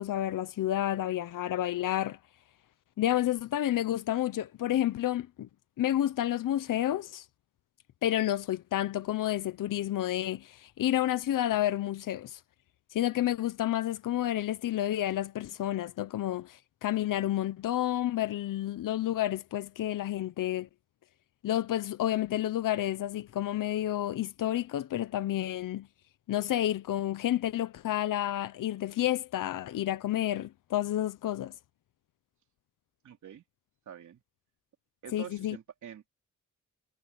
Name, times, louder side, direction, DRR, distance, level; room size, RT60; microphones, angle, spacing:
voice 1, 0.0-2.2 3.0-5.5 5.8-7.2 8.0-12.4 12.9-20.7 21.4-25.9 26.3-31.5 35.1-35.6, left 13 dB, 75° left, 0.8 m, -30 dB
voice 2, 33.0-33.4 33.9-34.2 35.0-36.1, right 9 dB, 65° right, 3.1 m, -46 dB
wide cardioid pair, 165°, 32 cm